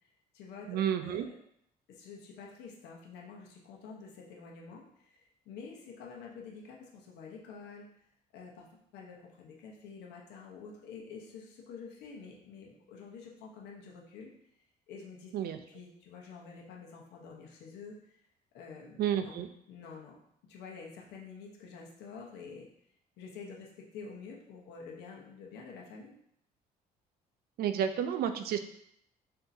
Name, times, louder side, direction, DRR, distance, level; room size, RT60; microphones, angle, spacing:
voice 1, 0.0-1.3 1.9-7.9 8.3-8.7 8.9-14.3 14.9-15.3 15.7-18.2 18.5-19.0 19.2-19.4 19.7-20.2 20.5-22.7 23.2-26.1, left 5 dB, 85° left, -1 dB, 1.0 m, -48 dB
voice 2, 0.7-1.2 15.3-15.6 19.0-19.5 27.6-28.6, right 9 dB, 65° right, 8 dB, 0.5 m, -31 dB
6.6 x 2.9 x 2.7 m, 0.71 s
cardioid pair, 110°, 17 cm